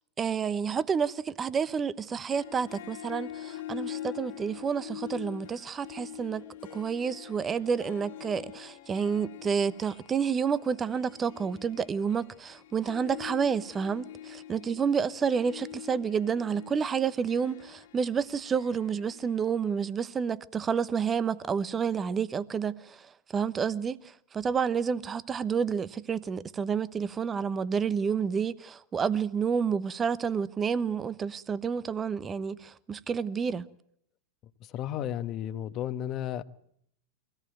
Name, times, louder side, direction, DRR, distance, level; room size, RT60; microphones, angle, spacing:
voice 1, 0.2-6.4 6.7-23.1 23.3-33.6, right 6 dB, 25° right, 1.0 m, -29 dB
Harp, 2.3-19.9, left 12 dB, 60° left, 2.3 m, -45 dB
voice 2, 34.6-36.4, left 11 dB, 40° left, 1.2 m, -33 dB
23.0 x 17.5 x 9.2 m
hypercardioid pair, 95°, 0 cm